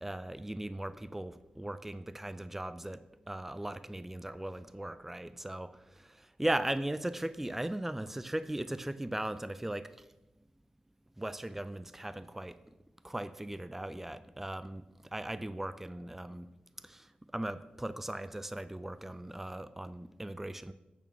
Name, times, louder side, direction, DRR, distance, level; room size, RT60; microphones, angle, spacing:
voice 1, 0.0-9.9 11.2-12.6 13.0-14.8 15.1-16.5 16.8-20.7, right 1 dB, 10° right, 13 dB, 0.4 m, -38 dB
8.5 x 7.0 x 5.8 m, 1.0 s
wide cardioid pair, 95°, 3 cm